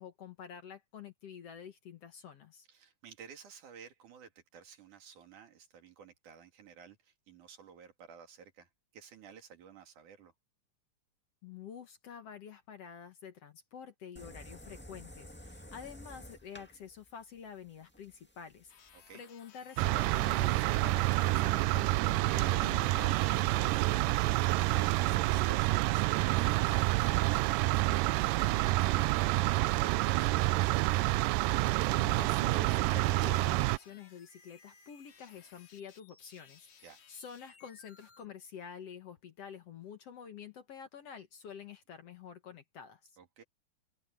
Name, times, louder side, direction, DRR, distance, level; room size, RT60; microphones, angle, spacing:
voice 1, 0.0-2.7 11.4-24.1 32.0-43.1, left 7 dB, 55° left, 2.1 m, -48 dB
voice 2, 2.7-10.3 18.9-19.2 24.4-28.0 28.3-31.0 36.8-37.0 43.2-43.4, right 7 dB, 70° right, 3.8 m, -54 dB
sound 1, 14.1-19.1, left 1 dB, 10° left, 0.6 m, -52 dB
sound 2, 18.7-38.3, left 7 dB, 80° left, 4.4 m, -59 dB
sound 3, 19.8-33.8, right 19 dB, 85° right, 2.2 m, -28 dB
omnidirectional pair, 3.8 m